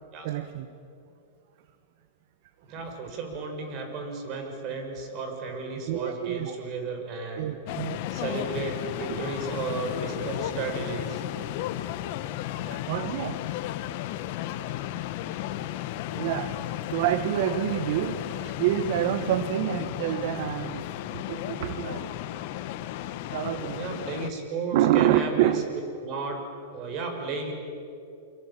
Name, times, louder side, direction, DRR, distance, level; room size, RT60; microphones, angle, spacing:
voice 1, 0.2-0.7 5.9-6.5 7.4-8.0 9.1-9.2 12.6-13.4 16.1-16.6 16.9-18.2 18.6-20.9 21.1-22.1 23.3-24.0 24.7-25.6, right 12 dB, 60° right, 11 dB, 1.4 m, -27 dB
voice 2, 2.7-7.4 8.1-11.2 23.7-25.5 26.0-26.4 26.7-27.5, right 4 dB, 40° right, 4 dB, 6.6 m, -33 dB
sound 1, 7.7-24.3, left 13 dB, 55° left, 1.5 m, -34 dB
29.0 x 23.0 x 8.9 m, 2.7 s
hypercardioid pair, 120°, 0 cm